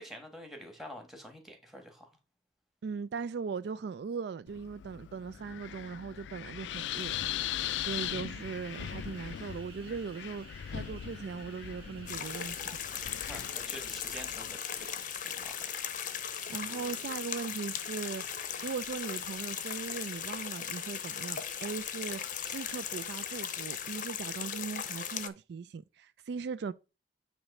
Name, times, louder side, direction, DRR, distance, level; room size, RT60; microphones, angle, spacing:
voice 1, 0.0-2.1 13.3-16.3 16.6-17.0 22.4-22.6, equal, ahead, 1.5 m, -48 dB
voice 2, 2.8-12.8 16.5-22.2 22.5-26.7, right 5 dB, 65° right, 0.3 m, -39 dB
Wind, 4.5-14.6, left 11 dB, 75° left, 0.3 m, -40 dB
sound 1, 7.4-24.3, right 2 dB, 35° right, 2.1 m, -54 dB
sound 2, 12.1-25.3, left 9 dB, 45° left, 0.6 m, -38 dB
8.8 x 3.0 x 5.4 m
head